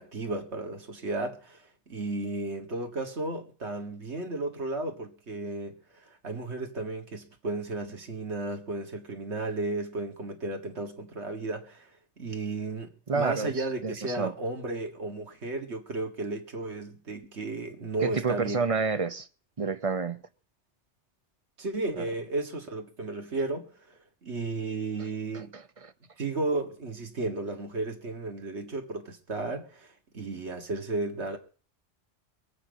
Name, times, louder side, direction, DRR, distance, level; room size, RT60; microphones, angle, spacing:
voice 1, 0.0-11.9 12.2-18.6 21.6-23.7 24.2-25.5 26.2-31.4, right 2 dB, 70° right, 2.2 m, -34 dB
voice 2, 13.1-14.3 18.0-19.3 19.6-20.2 22.0-22.1 25.0-25.1 25.3-25.9, right 4 dB, 35° right, 0.8 m, -30 dB
22.5 x 8.6 x 5.1 m
omnidirectional pair, 1.2 m